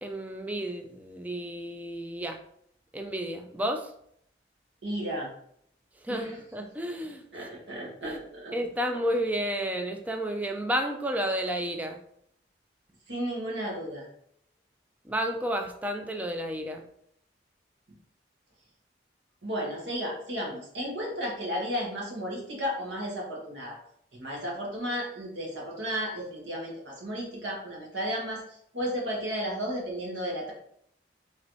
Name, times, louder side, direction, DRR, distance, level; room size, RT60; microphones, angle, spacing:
voice 1, 0.0-2.4 2.9-3.9 6.0-7.5 8.0-8.2 8.5-12.0 15.1-16.8, equal, 10° right, 4 dB, 0.3 m, -31 dB
voice 2, 4.8-5.3 6.1-6.4 7.3-8.5 13.1-14.1 19.4-23.8 24.1-30.5, equal, 75° right, -3 dB, 1.3 m, -33 dB
4.5 x 3.1 x 2.6 m, 0.69 s
head